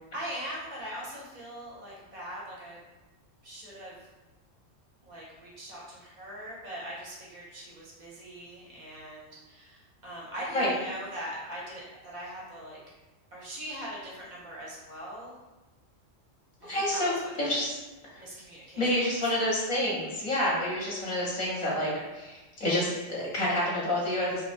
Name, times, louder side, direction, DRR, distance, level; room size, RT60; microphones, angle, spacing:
voice 1, 0.1-2.8 3.4-4.1 5.0-12.8 13.3-15.4 16.6-17.6 18.2-18.9 19.2-19.3, equal, 50° right, -6 dB, 0.6 m, -41 dB
voice 2, 16.7-17.1 17.4-17.8 18.8-24.4, left 1 dB, 45° left, -7 dB, 0.6 m, -28 dB
2.4 x 2.1 x 2.4 m, 1.1 s
omnidirectional pair, 1.3 m